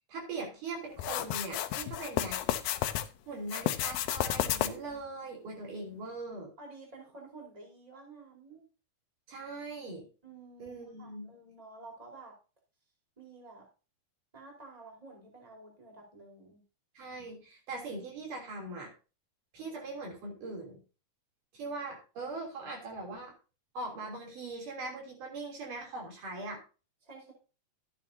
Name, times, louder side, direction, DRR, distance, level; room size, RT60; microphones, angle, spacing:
voice 1, 0.1-2.4 3.3-6.5 9.3-10.1 10.6-11.3 16.9-18.9 19.5-20.8 21.5-23.3 23.7-26.6, right 2 dB, 60° right, 0 dB, 4.6 m, -41 dB
sound 1, 1.0-3.1 3.5-4.9, left 12 dB, 80° left, 2.4 m, -32 dB
voice 2, 6.6-8.7 10.2-12.4 13.2-13.7 14.3-16.6 27.0-27.3, right 3 dB, 10° right, -1 dB, 3.9 m, -51 dB
13.5 x 9.1 x 2.7 m, 0.32 s
omnidirectional pair, 4.3 m